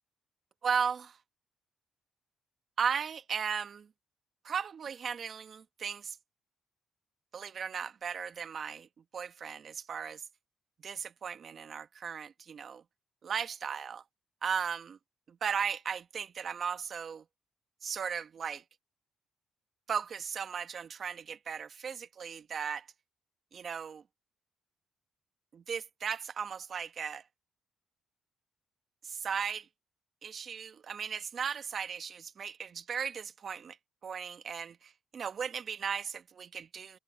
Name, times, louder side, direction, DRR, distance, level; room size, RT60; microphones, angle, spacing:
voice 1, 0.6-1.2 2.8-3.9 4.4-6.2 7.3-10.2 10.8-12.8 13.2-14.0 14.4-15.0 15.3-17.2 17.8-18.6 19.9-22.9 23.5-24.0 25.5-27.2 29.0-29.7 30.2-33.8 34.0-37.0, right 7 dB, 50° right, 1.2 m, -36 dB
cardioid pair, 100°, 0 cm